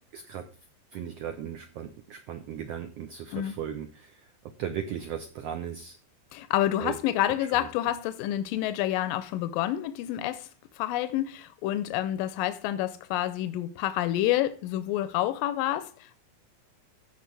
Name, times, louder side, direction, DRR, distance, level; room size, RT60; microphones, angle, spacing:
voice 1, 0.1-0.5 0.9-6.0 6.8-7.0 7.4-7.7, right 9 dB, 90° right, 1.4 m, -37 dB
voice 2, 6.3-10.5 10.8-16.2, left 13 dB, 90° left, 2.3 m, -28 dB
15.5 x 5.3 x 3.3 m
omnidirectional pair, 3.9 m